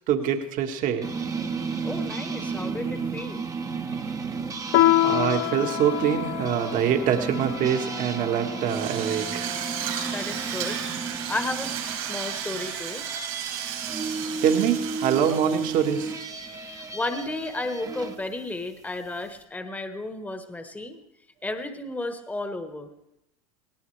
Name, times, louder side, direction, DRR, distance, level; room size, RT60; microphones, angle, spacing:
voice 1, 0.1-1.1 5.0-9.5 14.4-16.2, right 9 dB, 50° right, 5 dB, 1.8 m, -25 dB
sound 1, 1.0-18.2, right 4 dB, 20° right, 1.1 m, -33 dB
voice 2, 1.8-3.4 10.1-10.8 11.3-11.8 12.1-13.0 16.5-21.0 21.4-22.9, left 2 dB, 10° left, 7 dB, 1.4 m, -33 dB
Piano, 4.7-9.7, left 15 dB, 55° left, 0.6 m, -27 dB
Drill, 8.7-16.5, right 9 dB, 75° right, 5.9 m, -34 dB
18.0 x 17.5 x 3.4 m, 0.85 s
hypercardioid pair, 105°, 18 cm